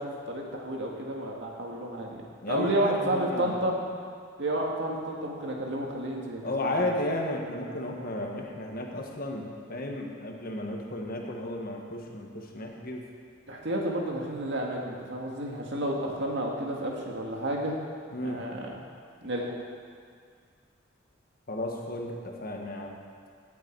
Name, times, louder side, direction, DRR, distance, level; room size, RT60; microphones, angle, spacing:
voice 1, 0.0-3.7 4.4-6.9 13.5-17.8 18.2-18.8 19.2-19.5, right 1 dB, 65° right, -1 dB, 1.9 m, -31 dB
voice 2, 2.4-3.6 6.4-13.1 18.1-18.4 21.5-23.0, left 1 dB, 50° left, 1 dB, 1.5 m, -33 dB
17.0 x 8.2 x 4.7 m, 2.1 s
head